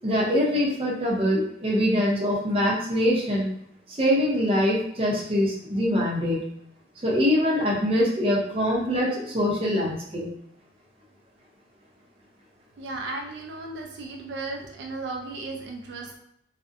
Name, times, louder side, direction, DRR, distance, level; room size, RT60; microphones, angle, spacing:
voice 1, 0.0-3.5 3.9-6.4 7.0-10.3, equal, 30° right, -4 dB, 0.5 m, -23 dB
voice 2, 12.8-16.2, right 3 dB, 80° right, 2 dB, 0.3 m, -35 dB
2.5 x 2.0 x 2.4 m, 0.71 s
head